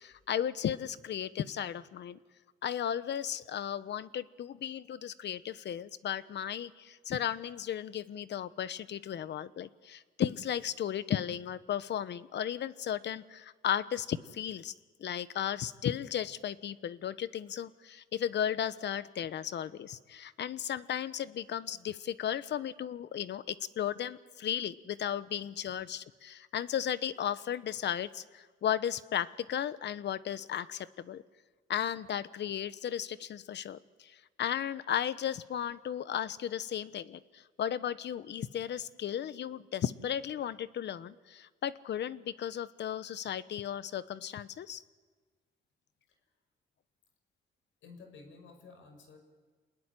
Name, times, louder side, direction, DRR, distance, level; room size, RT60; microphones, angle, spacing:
voice 1, 0.0-2.2 2.6-14.7 15.0-31.2 31.7-44.8, left 9 dB, 60° left, 15 dB, 1.1 m, -35 dB
voice 2, 47.8-49.2, left 4 dB, 80° left, 6 dB, 6.1 m, -53 dB
27.5 x 20.5 x 9.9 m, 1.4 s
cardioid pair, 90°, 20 cm